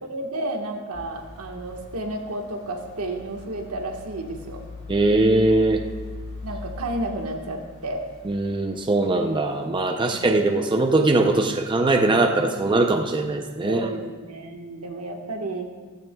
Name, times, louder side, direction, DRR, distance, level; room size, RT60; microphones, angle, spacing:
voice 1, 0.0-4.6 6.4-8.0 13.6-15.7, right 2 dB, 75° right, 2 dB, 1.4 m, -32 dB
sound 1, 0.9-9.2 9.6-9.7, left 3 dB, 45° left, 2.7 m, -41 dB
voice 2, 4.9-5.8 8.3-13.9, right 2 dB, 20° right, 3 dB, 0.6 m, -21 dB
15.5 x 14.0 x 2.3 m, 1.4 s
head